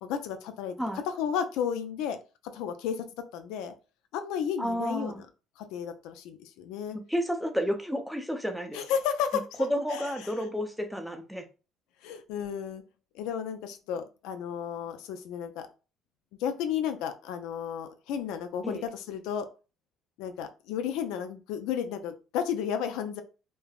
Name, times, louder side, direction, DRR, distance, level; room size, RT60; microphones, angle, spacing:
voice 1, 0.0-0.8 1.1-2.2 2.5-3.1 3.3-3.7 4.1-5.3 5.6-7.0 8.7-10.3 12.0-12.8 13.1-15.7 16.4-19.5 20.2-23.2, left 8 dB, 80° left, 8 dB, 0.3 m, -33 dB
voice 2, 4.6-5.2 6.9-8.8 9.6-11.4 18.6-18.8, equal, ahead, 5 dB, 0.5 m, -31 dB
3.2 x 2.0 x 2.3 m, 0.33 s
cardioid pair, 100°, 0 cm